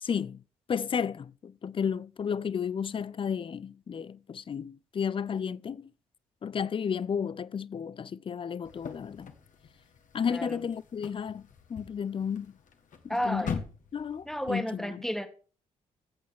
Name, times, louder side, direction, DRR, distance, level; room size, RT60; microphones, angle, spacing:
voice 1, 0.0-0.4 0.7-5.9 6.4-9.3 10.1-11.4 11.7-12.5 13.0-13.6 13.9-15.0, left 7 dB, 30° left, 0.5 m, -33 dB
sound 1, 8.6-14.5, left 6 dB, 45° left, 1.7 m, -43 dB
voice 2, 10.3-10.6 13.1-13.6 14.3-15.3, equal, ahead, 2.0 m, -32 dB
21.0 x 8.4 x 3.6 m
figure-of-eight pair, 45°, 18 cm